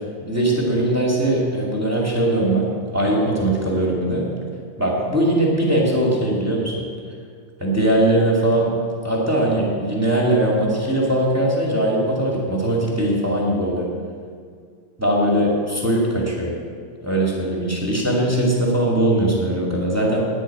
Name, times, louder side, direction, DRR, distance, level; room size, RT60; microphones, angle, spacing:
voice 1, 0.2-4.3 4.8-6.7 7.6-8.7 9.0-13.9 15.0-16.5 17.0-20.2, right 1 dB, 10° right, -4 dB, 0.9 m, -20 dB
10.5 x 10.0 x 8.8 m, 2.1 s
omnidirectional pair, 4.9 m